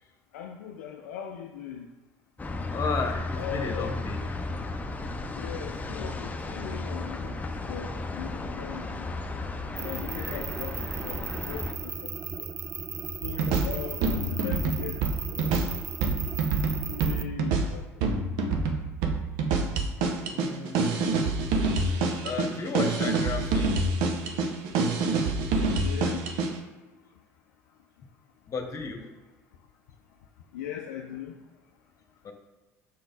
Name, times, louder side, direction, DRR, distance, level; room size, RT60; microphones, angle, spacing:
voice 1, 0.3-1.9 3.3-4.0 5.3-9.1 9.7-12.1 12.4-12.5 13.2-15.0 15.3-15.6 16.8-17.8 25.6-26.3 30.5-31.3, left 9 dB, 75° left, 3 dB, 0.4 m, -39 dB
sound 1, 2.4-11.7, left 2 dB, 20° left, 0.7 m, -34 dB
voice 2, 2.7-4.4 9.9-10.4 13.4-13.5 20.2-21.4 22.2-23.8 28.5-29.0 32.2-32.3, left 4 dB, 40° left, 3 dB, 1.2 m, -34 dB
sound 2, 9.8-17.2, right 6 dB, 35° right, 0.4 m, -36 dB
sound 3, 13.2-26.6, right 3 dB, 65° right, 0.8 m, -27 dB
6.4 x 3.9 x 3.9 m, 1.2 s
hypercardioid pair, 60°, 8 cm